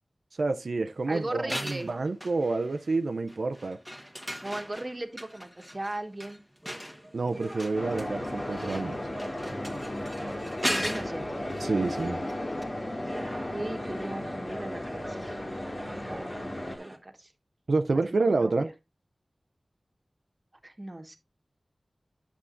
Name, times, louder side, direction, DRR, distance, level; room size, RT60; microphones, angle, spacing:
voice 1, 0.3-3.8 7.1-9.0 11.6-12.2 17.7-18.7, right 3 dB, 85° right, 0.4 m, -28 dB
voice 2, 1.1-1.9 4.4-6.4 10.6-11.5 13.5-15.2 15.8-17.3 17.9-18.7 20.6-21.2, right 1 dB, 35° right, 1.3 m, -38 dB
sound 1, 1.3-2.9 3.3-12.3 12.6-12.7, equal, 10° left, 1.3 m, -38 dB
sound 2, 6.6-17.0, right 1 dB, 15° right, 1.4 m, -46 dB
sound 3, 7.7-16.8, left 1 dB, 40° left, 1.9 m, -35 dB
9.8 x 7.0 x 2.5 m
wide cardioid pair, 65°, 0 cm